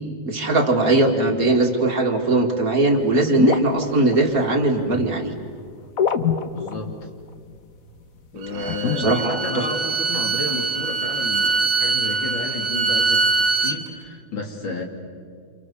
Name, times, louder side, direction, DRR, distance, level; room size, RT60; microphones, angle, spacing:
voice 1, 0.3-5.3 8.5-9.6, right 2 dB, 45° right, 2 dB, 2.6 m, -20 dB
sound 1, 2.9-4.6 6.0-7.0 7.5-7.6 8.6-9.2, left 6 dB, 50° left, 1.5 m, -24 dB
voice 2, 6.5-6.9 8.3-14.8, left 3 dB, 70° left, 2 dB, 3.8 m, -32 dB
Bowed string instrument, 8.4-13.8, right 4 dB, 70° right, 2.2 m, -23 dB
29.0 x 28.5 x 7.1 m, 2.2 s
omnidirectional pair, 2.2 m